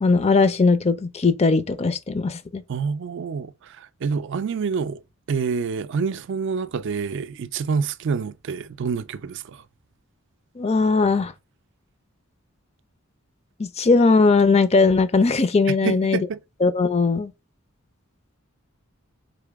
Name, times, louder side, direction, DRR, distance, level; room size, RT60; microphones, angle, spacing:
voice 1, 0.0-2.6 10.6-11.3 13.6-16.3 16.6-17.3, left 4 dB, 30° left, 0.5 m, -19 dB
voice 2, 2.7-5.0 5.3-9.6 15.7-16.4, right 5 dB, 60° right, 0.4 m, -27 dB
4.1 x 3.7 x 3.5 m
head